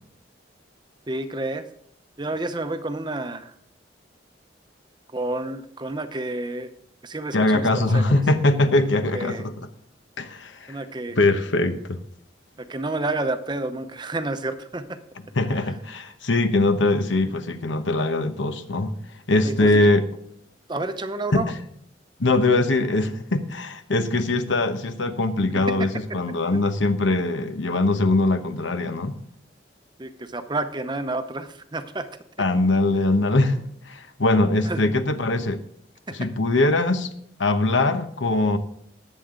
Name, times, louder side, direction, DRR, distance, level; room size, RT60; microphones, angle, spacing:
voice 1, 1.1-1.6 2.2-3.5 5.1-6.7 7.0-8.2 9.1-9.4 10.7-11.2 12.6-15.0 19.4-19.9 20.7-21.5 25.5-25.9 26.5-26.6 30.0-32.1 34.6-34.8 36.1-36.3, right 2 dB, 25° right, 0.7 m, -30 dB
voice 2, 7.3-9.7 10.2-10.8 11.1-12.0 15.4-18.9 19.3-20.1 21.3-21.4 22.2-29.2 32.4-35.6 36.1-37.1 37.4-38.6, left 2 dB, 85° left, 1.0 m, -22 dB
19.0 x 7.5 x 3.8 m
head